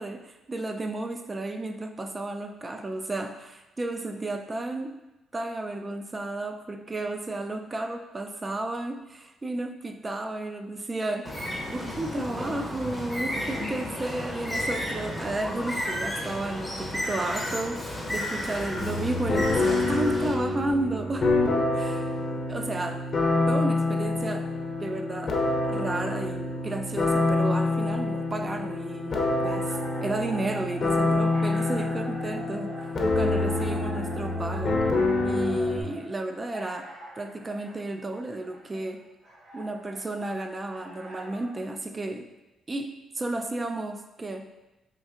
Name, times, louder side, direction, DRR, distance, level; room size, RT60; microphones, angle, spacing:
voice 1, 0.0-5.0 5.3-21.4 21.7-22.2 22.5-23.0 23.5-24.5 24.8-25.4 25.6-34.8 35.2-39.1 39.5-42.3 42.7-44.5, right 2 dB, 25° right, 6 dB, 0.3 m, -33 dB
Bird, 11.2-20.3, left 1 dB, 5° left, 0.7 m, -33 dB
sound 1, 18.7-35.8, left 2 dB, 45° left, 0.6 m, -26 dB
sound 2, 29.2-41.6, right 1 dB, 65° right, 0.7 m, -44 dB
4.3 x 2.6 x 2.4 m, 1.0 s
cardioid pair, 90°, 0 cm